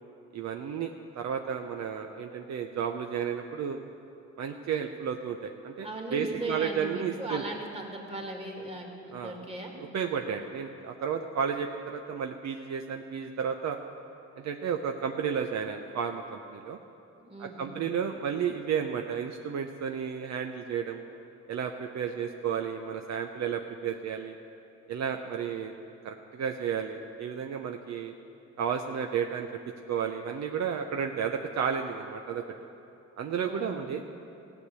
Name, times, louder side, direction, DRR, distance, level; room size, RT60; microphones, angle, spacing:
voice 1, 0.3-3.8 4.4-7.4 9.1-9.4 9.8-13.8 14.4-16.8 17.4-21.0 21.5-24.3 24.9-25.7 26.0-28.1 28.6-29.5 29.9-32.4 33.2-34.0, right 7 dB, 60° right, 4 dB, 0.7 m, -32 dB
voice 2, 5.8-9.7 17.2-17.8 33.4-33.8, right 2 dB, 20° right, 0 dB, 2.3 m, -38 dB
16.0 x 8.2 x 6.9 m, 2.8 s
cardioid pair, 90°, 30 cm